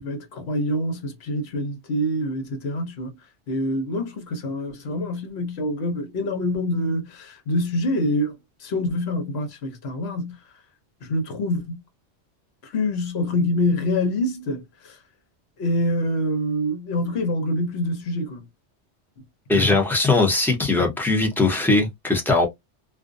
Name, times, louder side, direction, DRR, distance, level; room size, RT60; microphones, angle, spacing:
voice 1, 0.0-3.1 3.5-10.4 11.0-11.8 12.6-15.0 15.6-18.4 19.2-19.3, left 1 dB, 65° left, 1.0 m, -26 dB
voice 2, 19.5-22.5, left 3 dB, 5° left, 0.4 m, -20 dB
2.5 x 2.1 x 2.4 m
omnidirectional pair, 1.2 m